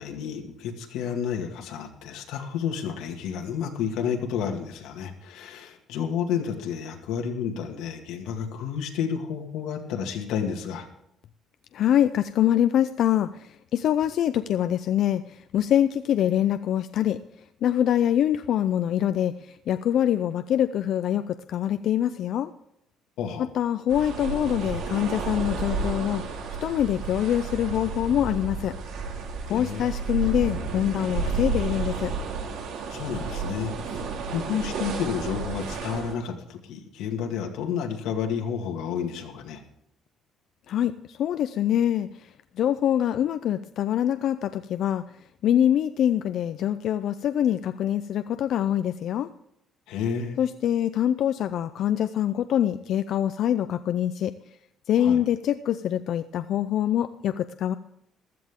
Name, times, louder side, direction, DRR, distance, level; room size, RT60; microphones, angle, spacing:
voice 1, 0.0-10.9 23.2-23.5 29.5-29.8 32.9-34.0 34.3-39.6 49.9-50.4 55.0-55.2, left 7 dB, 90° left, 3 dB, 2.1 m, -31 dB
voice 2, 11.7-17.2 17.6-22.5 23.4-26.2 26.6-28.7 29.5-32.1 40.7-42.3 42.6-45.0 45.4-49.3 50.4-54.3 54.9-57.8, left 10 dB, 55° left, 11 dB, 0.4 m, -24 dB
sound 1, 23.9-36.1, right 4 dB, 80° right, 2.4 m, -32 dB
15.0 x 13.0 x 3.7 m, 0.77 s
cardioid pair, 165°, 0 cm